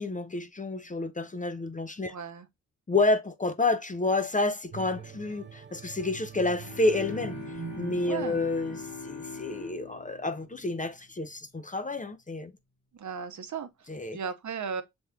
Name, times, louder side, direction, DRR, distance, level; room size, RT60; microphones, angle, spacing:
voice 1, 0.0-2.1 2.9-7.4 7.8-12.5 13.9-14.2, left 2 dB, 25° left, 0.5 m, -29 dB
voice 2, 2.1-2.5 8.0-8.4 12.9-14.8, right 6 dB, 60° right, 0.7 m, -36 dB
sound 1, 4.7-10.0 10.5-10.7, right 7 dB, 35° right, 0.4 m, -44 dB
sound 2, 6.6-11.3, left 5 dB, 75° left, 1.6 m, -42 dB
5.8 x 3.5 x 2.2 m
cardioid pair, 70°, 33 cm